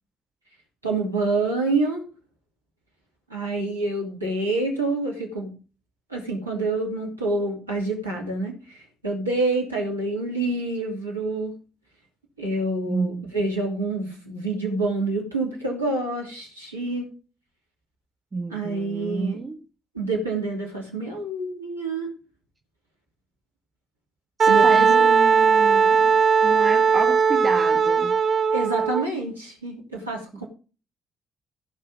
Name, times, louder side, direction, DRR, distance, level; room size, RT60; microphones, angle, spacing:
voice 1, 0.8-2.1 3.3-5.5 6.1-11.5 12.4-17.1 18.5-19.4 19.9-22.1 24.5-24.9 28.5-30.5, right 2 dB, 90° right, 2.8 m, -27 dB
voice 2, 12.8-13.3 18.3-19.6 24.4-28.1 30.3-30.4, right 4 dB, 30° right, 1.4 m, -30 dB
Wind instrument woodwind instrument, 24.4-29.0, right 6 dB, 45° right, 1.0 m, -18 dB
15.0 x 5.5 x 5.3 m
figure-of-eight pair, 45°, 0 cm